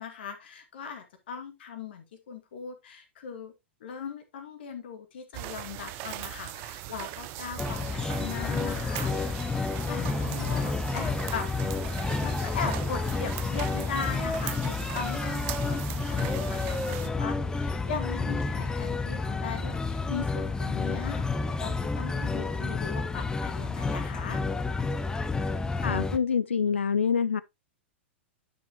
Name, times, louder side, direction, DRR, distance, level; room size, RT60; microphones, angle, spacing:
voice 1, 0.0-3.5 3.8-9.6 9.9-11.5 12.2-21.3 21.6-24.4, left 6 dB, 60° left, 2.1 m, -39 dB
sound 1, 5.3-17.1, right 15 dB, 40° right, 0.8 m, -40 dB
sound 2, 7.6-26.2, left 3 dB, 10° left, 0.7 m, -30 dB
voice 2, 25.8-27.4, left 6 dB, 75° left, 0.4 m, -26 dB
10.0 x 6.1 x 2.9 m
figure-of-eight pair, 95°, 6 cm